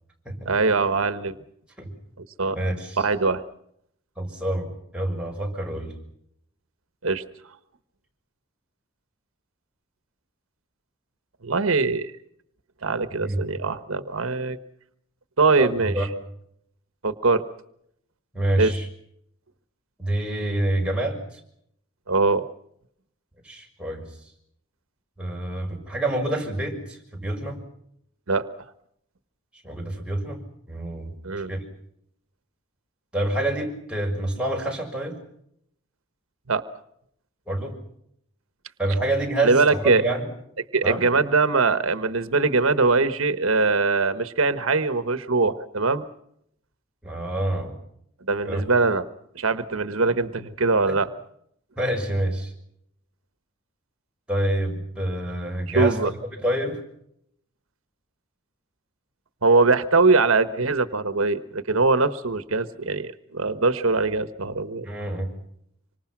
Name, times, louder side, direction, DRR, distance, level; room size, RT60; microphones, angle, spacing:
voice 1, 0.4-1.3 2.4-2.6 3.0-3.4 7.0-7.2 11.4-12.1 12.8-14.6 15.4-16.1 17.0-17.4 18.6-18.7 22.1-22.4 28.3-28.5 31.2-31.5 36.5-36.6 39.4-40.0 40.7-46.1 48.3-49.0 49.3-51.1 55.7-56.1 59.4-64.9, right 3 dB, 85° right, 11 dB, 1.3 m, -22 dB
voice 2, 2.5-3.0 4.2-5.9 13.2-13.4 15.6-16.1 18.3-18.9 20.0-21.4 23.4-24.0 25.2-27.6 29.6-30.4 30.7-31.1 31.5-31.6 33.1-35.2 37.5-37.8 38.8-40.2 40.8-41.0 47.0-47.8 48.4-48.6 50.9-51.0 51.8-52.5 54.3-56.1 56.4-56.8 64.8-65.3, right 1 dB, 5° right, -1 dB, 6.5 m, -27 dB
26.5 x 25.5 x 6.1 m, 0.72 s
head